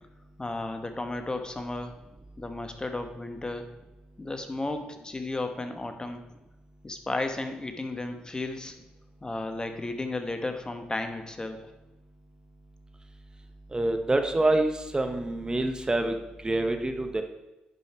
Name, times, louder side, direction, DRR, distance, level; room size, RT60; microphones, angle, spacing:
voice 1, 0.4-2.0 2.4-3.7 4.2-6.2 6.8-8.8 9.2-11.7, left 2 dB, 20° left, 6 dB, 1.2 m, -34 dB
voice 2, 13.7-16.2 16.4-17.2, right 2 dB, 20° right, 6 dB, 1.1 m, -26 dB
11.0 x 5.5 x 4.4 m, 1.0 s
supercardioid pair, 55°, 4 cm